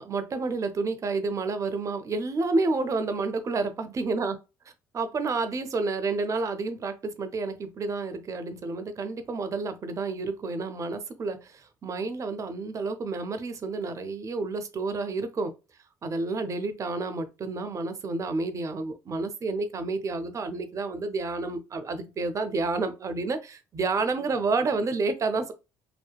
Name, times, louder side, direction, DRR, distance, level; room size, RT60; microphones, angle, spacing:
voice 1, 0.0-4.4 4.9-15.5 16.0-25.5, right 3 dB, 40° right, 0.5 m, -30 dB
2.7 x 2.1 x 2.2 m
hypercardioid pair, 65°, 9 cm